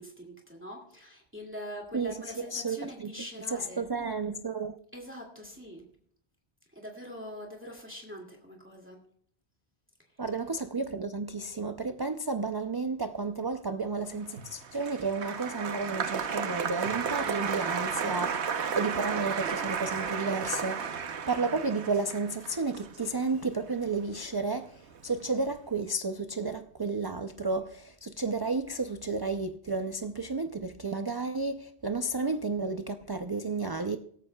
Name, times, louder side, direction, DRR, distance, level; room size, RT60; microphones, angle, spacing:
voice 1, 0.0-3.8 4.9-5.8 6.7-9.0 17.1-17.6, equal, 10° right, 2.2 m, -43 dB
voice 2, 1.9-3.1 3.5-4.8 10.2-18.4 18.7-34.0, right 3 dB, 35° right, 0.3 m, -32 dB
Applause, 14.2-24.6 24.9-25.5, right 6 dB, 80° right, 1.2 m, -33 dB
17.0 x 14.0 x 2.3 m
omnidirectional pair, 1.1 m